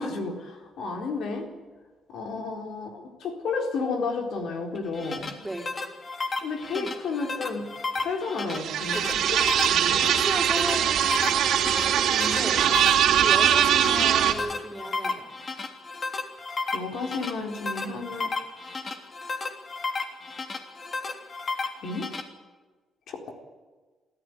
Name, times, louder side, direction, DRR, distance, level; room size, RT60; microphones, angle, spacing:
voice 1, 0.0-1.5 2.1-5.4 6.4-7.7 8.0-9.4 9.7-10.1 16.7-18.3 21.8-22.1 23.1-23.3, left 4 dB, 75° left, 3 dB, 4.1 m, -32 dB
sound 1, 4.7-22.2, left 3 dB, 40° left, 3.3 m, -34 dB
voice 2, 5.4-5.7 6.7-6.9 8.9-9.2 10.0-11.4 11.8-12.6 13.0-15.3, right 1 dB, 10° right, 2 dB, 4.3 m, -35 dB
sound 2, 8.5-14.3, right 10 dB, 85° right, 3.1 m, -22 dB
27.0 x 14.5 x 9.8 m, 1.4 s
cardioid pair, 85°, 0 cm